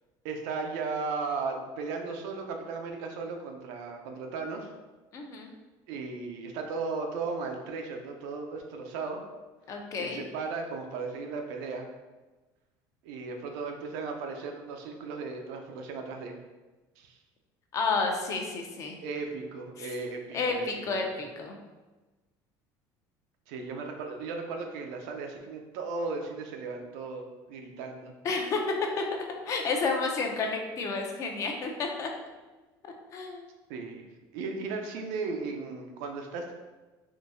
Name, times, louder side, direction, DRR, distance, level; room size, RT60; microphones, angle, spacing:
voice 1, 0.2-4.7 5.9-9.2 10.0-11.9 13.0-16.4 17.0-17.2 19.0-21.2 23.5-28.1 33.7-34.1 34.3-36.5, right 4 dB, 90° right, 3 dB, 0.5 m, -36 dB
voice 2, 5.1-5.5 9.7-10.2 17.7-19.0 19.8-19.9 20.3-21.6 28.2-28.6 29.0-32.1 32.8-33.5, left 4 dB, 35° left, 2 dB, 0.5 m, -31 dB
3.7 x 2.6 x 2.6 m, 1.2 s
cardioid pair, 145°, 9 cm